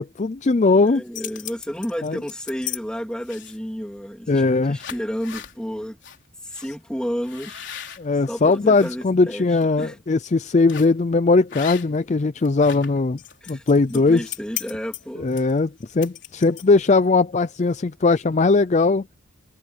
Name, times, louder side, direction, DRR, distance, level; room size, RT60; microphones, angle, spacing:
voice 1, 0.0-1.0 2.0-2.2 4.3-4.8 8.0-13.2 13.5-14.3 15.2-19.0, left 3 dB, 30° left, 0.4 m, -19 dB
voice 2, 0.8-6.0 6.4-7.7 8.3-10.0 13.4-13.6 13.9-15.4, equal, 5° left, 2.9 m, -31 dB
sound 1, 0.9-2.8 3.2-3.7 4.3-4.5 4.7-5.5 6.0-6.2 6.5-6.7 7.2-8.9 9.4-9.6 10.7-11.0 11.5-12.1 12.4-16.9, left 11 dB, 55° left, 4.2 m, -36 dB
head